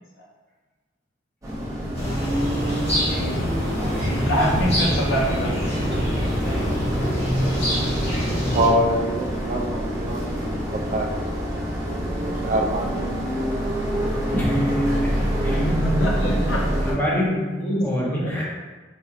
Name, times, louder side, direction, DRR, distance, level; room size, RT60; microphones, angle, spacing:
sound 1, 1.4-16.9, equal, 20° right, 0.7 m, -26 dB
sound 2, 1.9-8.7, equal, 35° left, 1.1 m, -25 dB
voice 1, 2.6-5.9 14.0-14.1 15.5-16.6 17.6-18.4, equal, 80° left, -2 dB, 0.7 m, -27 dB
voice 2, 8.5-10.2 10.7-11.5 12.2-13.4 15.6-15.7, right 1 dB, 40° right, 2 dB, 0.4 m, -25 dB
voice 3, 14.3-15.6 16.8-18.4, equal, 10° left, -7 dB, 0.9 m, -26 dB
4.2 x 2.6 x 2.4 m, 1.3 s
head